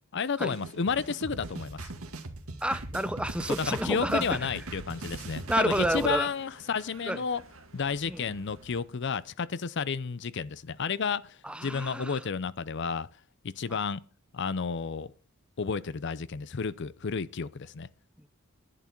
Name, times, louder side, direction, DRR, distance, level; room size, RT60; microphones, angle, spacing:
voice 1, 0.1-1.9 3.6-7.4 7.7-11.4 11.6-13.1 13.4-14.0 14.3-15.1 15.6-17.9, left 5 dB, 55° left, 0.6 m, -31 dB
sound 1, 0.5-6.1, right 2 dB, 85° right, 2.2 m, -40 dB
voice 2, 2.6-4.5 5.5-6.3 7.1-7.2 8.1-8.3 11.4-12.2 13.7-13.8, right 1 dB, 5° right, 0.6 m, -30 dB
sound 2, 3.8-9.0, right 3 dB, 65° right, 1.6 m, -54 dB
11.0 x 11.0 x 4.5 m
head